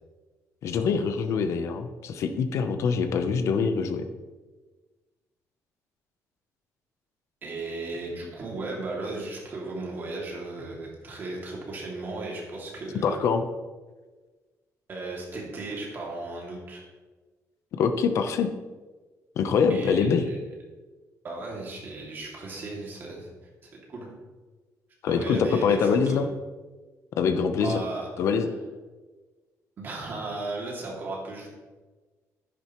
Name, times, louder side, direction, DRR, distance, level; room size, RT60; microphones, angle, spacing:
voice 1, 0.6-4.0 13.0-13.4 17.7-18.5 19.4-20.3 25.0-26.3 27.2-27.8 28.2-28.5, left 6 dB, 55° left, 8 dB, 0.8 m, -24 dB
voice 2, 7.4-13.2 14.9-16.8 19.7-20.4 21.2-23.3 23.9-24.1 25.1-26.2 27.6-28.3 29.8-31.5, right 2 dB, 35° right, -2 dB, 2.6 m, -35 dB
10.5 x 10.0 x 3.1 m, 1.3 s
cardioid pair, 175°, 6 cm